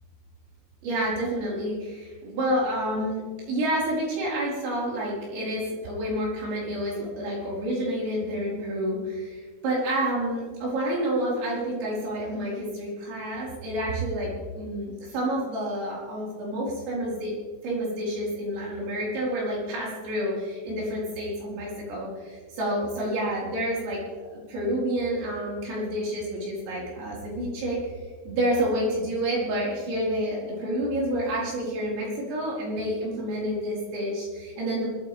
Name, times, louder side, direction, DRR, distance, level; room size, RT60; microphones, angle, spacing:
voice 1, 0.8-17.3 17.6-24.0 24.3-27.8 28.3-34.9, right 1 dB, 90° right, -5 dB, 7.5 m, -29 dB
20.0 x 13.5 x 3.6 m, 1.5 s
omnidirectional pair, 5.7 m